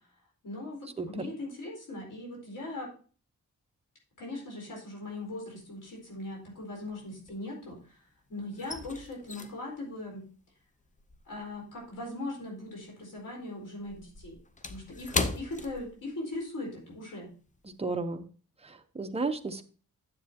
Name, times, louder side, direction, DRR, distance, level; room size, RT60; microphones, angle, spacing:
voice 1, 0.4-2.9 4.2-8.0 8.3-10.3 11.3-14.4 14.7-17.3, left 2 dB, 75° left, -2 dB, 4.4 m, -40 dB
sound 1, 5.1-5.7 5.9-7.9 8.2-12.9 13.2-16.5 16.8-17.0 17.5-17.7, left 3 dB, 25° left, 0.6 m, -38 dB
voice 2, 17.8-18.2 18.6-19.6, right 3 dB, 20° right, 6 dB, 0.7 m, -33 dB
9.8 x 7.5 x 2.8 m, 0.40 s
wide cardioid pair, 125°, 31 cm